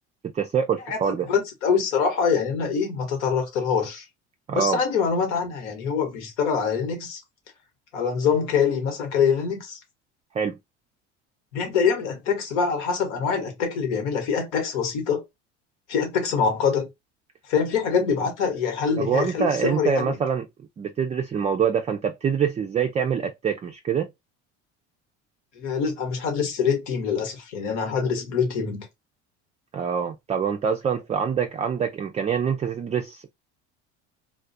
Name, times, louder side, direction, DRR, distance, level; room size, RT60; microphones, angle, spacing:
voice 1, 0.3-1.3 4.5-4.8 10.3-10.6 19.0-20.5 20.8-24.1 29.7-33.3, right 7 dB, 20° right, 0.3 m, -25 dB
voice 2, 1.3-4.0 4.5-7.2 7.9-9.8 11.5-15.2 15.9-16.9 17.5-20.2 25.6-28.9, left 6 dB, 80° left, 1.2 m, -24 dB
2.3 x 2.1 x 2.6 m
hypercardioid pair, 75°, 35 cm